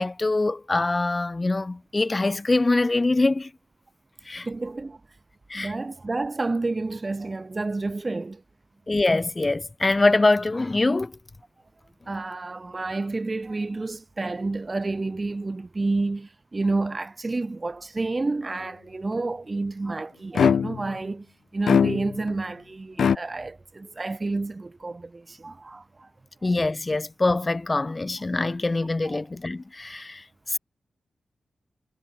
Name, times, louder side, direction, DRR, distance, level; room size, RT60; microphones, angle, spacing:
voice 1, 0.0-3.5 4.3-4.5 5.5-5.7 8.9-11.1 26.4-30.6, left 2 dB, 25° left, 1.3 m, -24 dB
voice 2, 4.5-5.0 5.5-8.4 12.1-21.3 21.5-26.1 26.4-26.5 29.0-29.2, right 3 dB, 30° right, 2.7 m, -30 dB
sound 1, 20.3-20.9 21.7-22.3 23.0-23.2, left 7 dB, 85° left, 1.4 m, -21 dB
wide cardioid pair, 115°, 0 cm